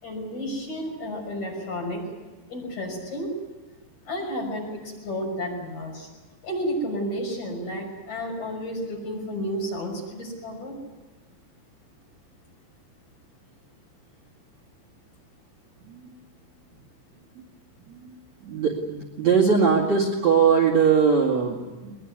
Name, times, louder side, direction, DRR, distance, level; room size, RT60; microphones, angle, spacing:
voice 1, 0.0-2.0 2.5-3.3 4.1-6.1 6.4-10.7, equal, 40° left, 0 dB, 7.3 m, -31 dB
voice 2, 18.4-22.0, right 6 dB, 45° right, 0 dB, 3.0 m, -21 dB
22.0 x 21.5 x 9.6 m, 1.2 s
omnidirectional pair, 5.3 m